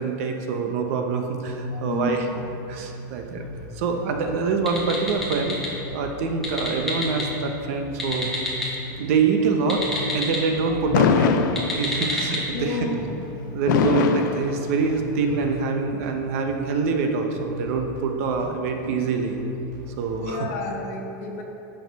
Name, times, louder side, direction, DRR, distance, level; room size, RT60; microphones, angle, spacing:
voice 1, 0.0-2.2 2.7-3.4 3.8-8.3 9.0-9.8 10.1-11.3 11.7-12.9 13.5-19.4 20.0-20.5, right 5 dB, 45° right, 4 dB, 0.8 m, -25 dB
sound 1, 1.5-20.3, left 1 dB, 80° right, 1.5 m, -38 dB
voice 2, 1.8-2.4 12.5-13.2 20.1-21.4, left 3 dB, 50° left, 1 dB, 1.2 m, -30 dB
sound 2, 4.5-5.7 6.3-7.3 7.9-8.7 9.6-10.4 11.4-12.4, left 1 dB, 5° left, 1.3 m, -29 dB
Fireworks, 10.9-12.2 13.7-15.2, left 7 dB, 70° left, 0.5 m, -22 dB
10.5 x 6.4 x 4.1 m, 2.9 s
supercardioid pair, 180°, 11 cm